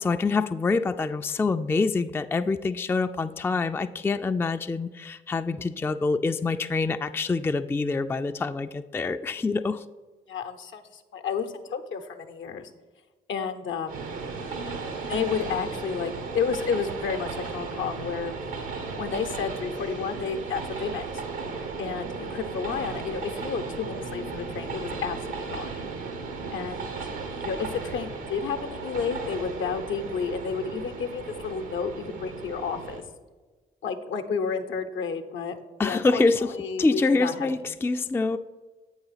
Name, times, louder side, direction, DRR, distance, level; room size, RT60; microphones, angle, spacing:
voice 1, 0.0-9.8 35.8-36.5 36.8-38.4, left 3 dB, 10° left, 9 dB, 0.3 m, -26 dB
voice 2, 10.3-12.7 13.3-13.9 15.1-18.3 19.0-21.2 21.8-25.7 26.5-27.0 27.4-33.0 33.8-36.2 36.5-37.5, left 6 dB, 65° left, 7 dB, 0.7 m, -31 dB
Train, 13.9-33.0, right 4 dB, 85° right, 1.0 m, -35 dB
7.9 x 4.0 x 5.6 m, 1.3 s
hypercardioid pair, 45°, 21 cm